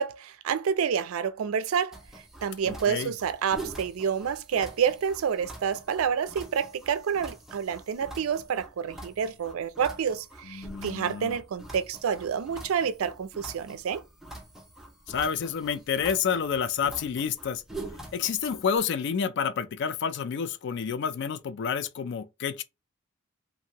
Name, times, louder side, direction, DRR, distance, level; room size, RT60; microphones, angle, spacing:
voice 1, 0.0-2.0 2.4-14.0, right 7 dB, 75° right, 0.4 m, -28 dB
sound 1, 1.9-18.8, right 2 dB, ahead, 0.5 m, -45 dB
voice 2, 2.6-3.1 10.5-11.4 15.1-17.6 18.1-22.6, left 7 dB, 55° left, 0.3 m, -29 dB
2.8 x 2.5 x 2.7 m
head